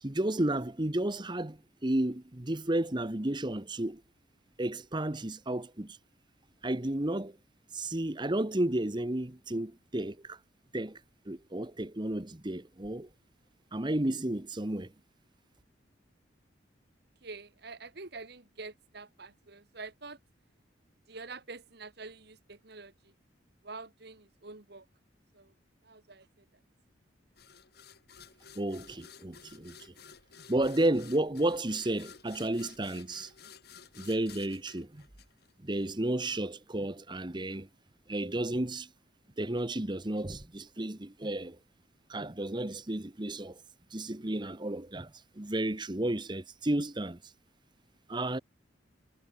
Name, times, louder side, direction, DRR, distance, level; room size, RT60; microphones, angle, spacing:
voice 1, 0.0-4.0 4.6-6.0 6.6-7.4 7.7-10.4 10.7-11.0 11.3-13.1 13.7-14.9 28.6-29.9 30.5-33.3 34.0-35.0 35.6-37.7 38.1-38.9 39.4-41.6 42.1-43.6 43.9-45.1 45.4-47.3 48.1-48.4, right 1 dB, 25° right, 1.1 m, -32 dB
voice 2, 17.2-20.2 21.1-23.1 23.6-24.8 25.3-25.5 25.8-26.4, right 3 dB, 60° right, 1.8 m, -46 dB
sound 1, 27.4-35.9, left 7 dB, 55° left, 3.0 m, -53 dB
head